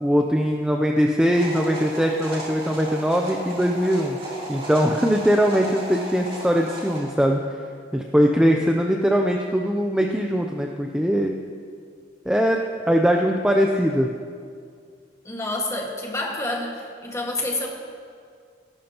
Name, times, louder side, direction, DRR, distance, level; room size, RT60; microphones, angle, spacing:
voice 1, 0.0-4.2 4.5-7.4 7.9-11.3 12.3-12.6 12.9-14.1, equal, 5° right, 1 dB, 0.5 m, -21 dB
sound 1, 1.3-7.0, right 1 dB, 35° right, 3.4 m, -35 dB
voice 2, 15.3-17.7, left 2 dB, 15° left, -1 dB, 1.7 m, -28 dB
18.0 x 12.0 x 2.9 m, 2.2 s
head